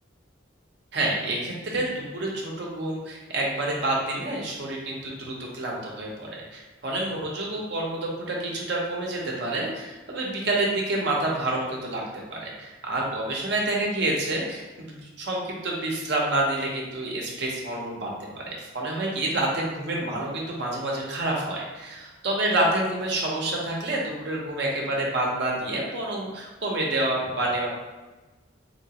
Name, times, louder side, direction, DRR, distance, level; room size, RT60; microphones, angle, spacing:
voice 1, 0.9-12.0 12.3-27.7, right 2 dB, 55° right, -2 dB, 0.7 m, -28 dB
4.0 x 3.0 x 2.9 m, 1.2 s
head